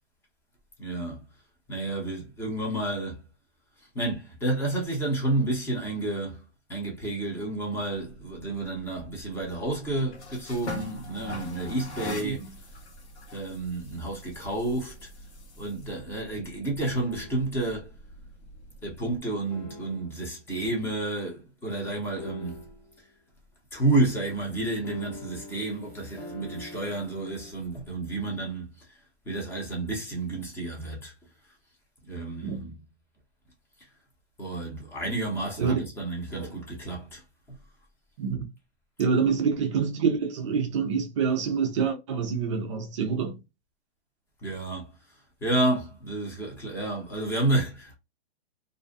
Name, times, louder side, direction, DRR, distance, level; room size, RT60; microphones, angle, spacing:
voice 1, 0.8-1.2 1.7-3.2 3.8-6.4 6.7-12.4 13.3-15.1 15.6-17.9 18.8-22.6 23.7-29.0 29.3-31.1 32.0-32.8 33.8-33.9 34.4-37.2 44.4-48.0, right 2 dB, 5° left, 0.7 m, -30 dB
sound 1, 8.0-19.2, left 2 dB, 85° left, 1.1 m, -43 dB
sound 2, 16.8-17.6 19.5-20.3 22.2-23.0 24.8-27.5, left 2 dB, 45° left, 0.9 m, -43 dB
voice 2, 39.0-43.4, right 6 dB, 30° right, 0.4 m, -26 dB
2.5 x 2.1 x 2.4 m
hypercardioid pair, 145°, 33 cm